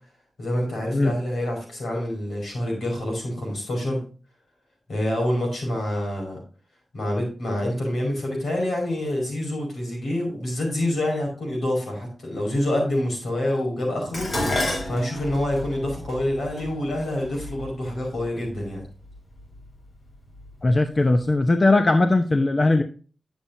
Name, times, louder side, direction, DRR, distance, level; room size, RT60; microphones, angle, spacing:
voice 1, 0.4-4.0 4.9-6.4 6.9-14.3 14.8-18.8, left 1 dB, 85° left, 0 dB, 5.1 m, -27 dB
Dishes pots and pans, 14.1-18.5 19.4-19.8 20.2-21.0 21.3-21.4, left 1 dB, 65° left, 3.7 m, -31 dB
voice 2, 20.6-22.8, left 2 dB, 45° left, 7 dB, 0.8 m, -19 dB
10.5 x 7.3 x 2.7 m, 0.37 s
cardioid pair, 55°, 0 cm